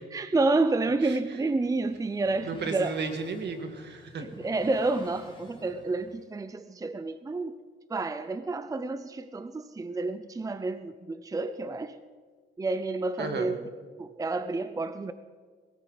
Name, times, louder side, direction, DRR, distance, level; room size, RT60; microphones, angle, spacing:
voice 1, 0.0-3.0 4.1-7.6 7.9-12.0 12.6-13.6 14.0-15.1, right 3 dB, 15° right, 12 dB, 0.6 m, -29 dB
sound 1, 1.2-6.2, left 2 dB, 25° left, 2.8 m, -51 dB
voice 2, 2.4-4.3 13.2-13.5, right 4 dB, 60° right, 6 dB, 1.9 m, -34 dB
20.5 x 14.0 x 4.1 m, 1.5 s
cardioid pair, 90°, 20 cm